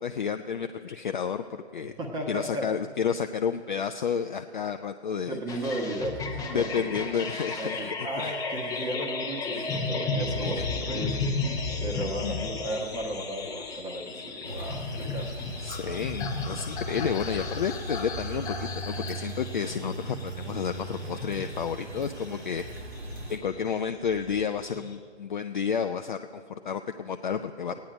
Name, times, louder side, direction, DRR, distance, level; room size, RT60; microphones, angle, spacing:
voice 1, 0.0-1.9 2.3-5.4 6.5-8.3 9.5-9.9 10.4-10.7 12.0-12.5 15.6-22.6 23.3-27.7, left 7 dB, 45° left, 7 dB, 0.4 m, -31 dB
voice 2, 2.0-2.7 5.3-7.2 7.6-15.4, right 1 dB, 10° right, 2 dB, 1.2 m, -35 dB
sound 1, 5.5-24.9, left 3 dB, 10° left, 0.9 m, -34 dB
sound 2, 14.4-23.4, right 2 dB, 65° right, 1.8 m, -38 dB
16.5 x 9.4 x 5.0 m, 2.1 s
figure-of-eight pair, 125°, 34 cm